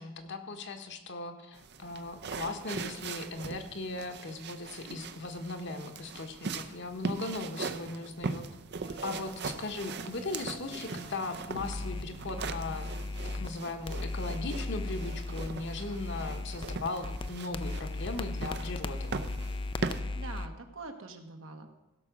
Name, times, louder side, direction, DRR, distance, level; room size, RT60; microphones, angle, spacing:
voice 1, 0.0-8.5 9.0-12.9 13.3-19.2, left 3 dB, 60° left, 5 dB, 1.2 m, -38 dB
sound 1, 1.6-20.0, right 4 dB, 55° right, 0.6 m, -40 dB
sound 2, 8.8-13.5 13.9-20.5, left 2 dB, 25° left, 0.4 m, -38 dB
voice 2, 20.1-21.7, right 3 dB, 75° right, 5 dB, 1.3 m, -44 dB
16.0 x 6.0 x 6.0 m, 1.0 s
head